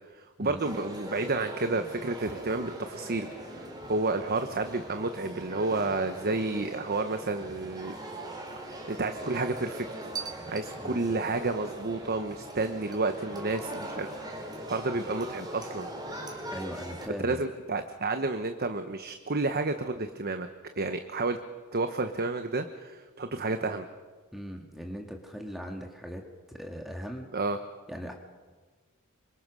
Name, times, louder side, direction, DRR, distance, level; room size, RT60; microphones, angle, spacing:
voice 1, 0.1-7.9 8.6-9.9 10.5-14.1 14.5-15.9 17.2-20.5 20.8-21.4 21.7-23.9 27.3-27.6, right 3 dB, 45° right, 7 dB, 1.1 m, -31 dB
sound 1, 0.6-17.1, right 1 dB, 20° right, 3.8 m, -41 dB
voice 2, 16.5-17.5 24.3-27.3 27.9-28.1, equal, ahead, 2 dB, 1.9 m, -39 dB
27.0 x 25.0 x 6.4 m, 1.4 s
head